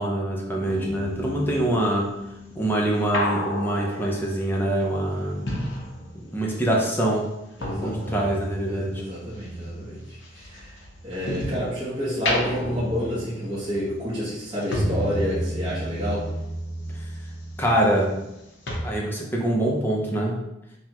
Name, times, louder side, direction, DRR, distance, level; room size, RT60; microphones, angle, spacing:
voice 1, 0.0-2.1 2.6-5.4 6.3-7.2 7.8-9.0 17.6-18.1 18.8-20.4, right 1 dB, 10° left, -2 dB, 0.7 m, -24 dB
sound 1, 0.6-6.6 6.9-11.7 12.1-18.4 18.7-18.8, left 1 dB, 90° left, 0.9 m, -32 dB
voice 2, 7.6-8.3 8.7-10.7 11.0-16.3, equal, 25° right, -10 dB, 1.1 m, -29 dB
5.7 x 2.3 x 2.9 m, 0.90 s
head